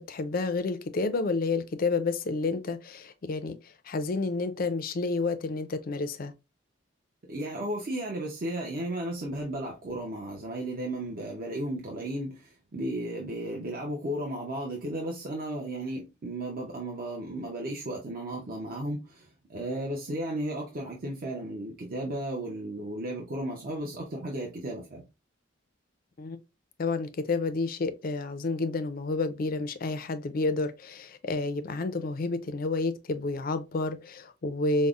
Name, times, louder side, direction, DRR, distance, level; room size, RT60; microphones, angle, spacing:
voice 1, 0.0-6.3 26.2-26.4 26.8-34.9, left 3 dB, 45° left, 0.4 m, -30 dB
voice 2, 7.3-25.0, right 1 dB, 45° right, 0.6 m, -34 dB
5.2 x 2.0 x 2.4 m
head